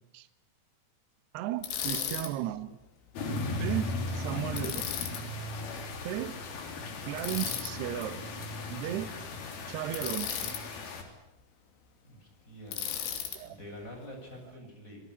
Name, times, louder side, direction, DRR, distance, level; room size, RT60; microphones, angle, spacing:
voice 1, 1.3-2.8 3.6-4.9 6.0-6.4 7.1-8.2 8.7-9.1 9.7-10.6 13.3-13.6, right 13 dB, 70° right, 2.9 m, -35 dB
Bicycle, 1.6-2.3 4.6-5.2 7.2-7.7 9.9-10.6 12.7-13.4, left 9 dB, 80° left, 5.2 m, -35 dB
sound 1, 3.2-11.0, left 2 dB, 55° left, 5.0 m, -37 dB
voice 2, 12.0-12.9 13.4-15.0, equal, 15° left, 7.6 m, -46 dB
28.0 x 18.5 x 9.7 m
omnidirectional pair, 5.5 m